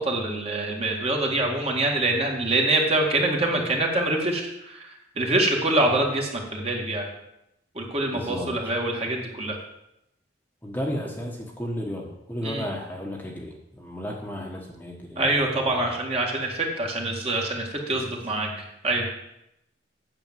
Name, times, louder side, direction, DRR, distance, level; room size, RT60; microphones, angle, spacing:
voice 1, 0.0-4.9 5.2-7.1 7.8-9.6 12.4-12.7 15.2-19.1, right 2 dB, 35° right, 0 dB, 2.1 m, -25 dB
voice 2, 8.1-8.5 10.6-15.9 17.9-18.2, equal, 10° left, -1 dB, 1.3 m, -34 dB
8.9 x 6.8 x 7.6 m, 0.84 s
head